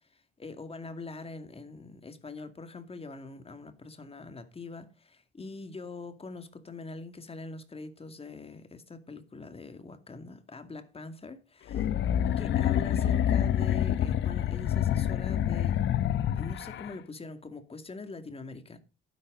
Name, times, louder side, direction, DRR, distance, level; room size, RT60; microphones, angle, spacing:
voice 1, 0.1-11.9 12.4-15.8 16.4-18.8, left 3 dB, 30° left, 2.3 m, -43 dB
sound 1, 11.7-16.9, left 10 dB, 70° left, 0.9 m, -27 dB
11.5 x 10.5 x 4.0 m
cardioid pair, 90°, 20 cm